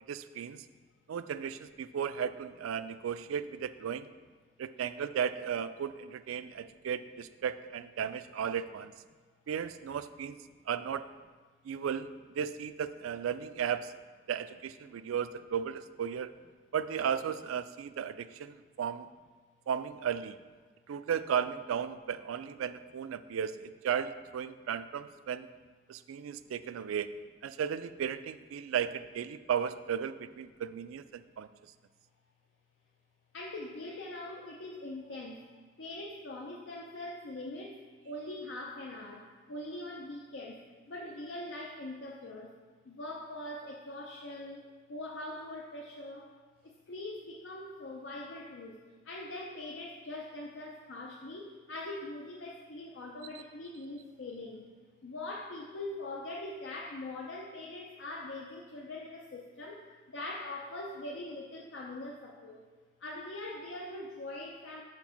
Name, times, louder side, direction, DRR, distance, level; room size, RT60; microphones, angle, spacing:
voice 1, 0.1-0.7 1.1-4.1 4.6-8.9 9.5-10.4 10.7-11.1 11.6-13.9 14.3-16.3 16.7-19.1 19.7-20.4 20.9-25.5 25.9-27.1 27.4-31.5, right 8 dB, 90° right, 12 dB, 0.3 m, -35 dB
voice 2, 33.3-35.4 35.8-37.8 38.1-39.2 39.5-40.6 40.9-42.5 42.9-44.6 44.9-46.2 46.9-48.8 49.1-54.6 55.0-59.8 60.1-62.6 63.0-64.8, left 2 dB, 65° left, -2 dB, 0.6 m, -42 dB
6.0 x 4.4 x 5.8 m, 1.4 s
head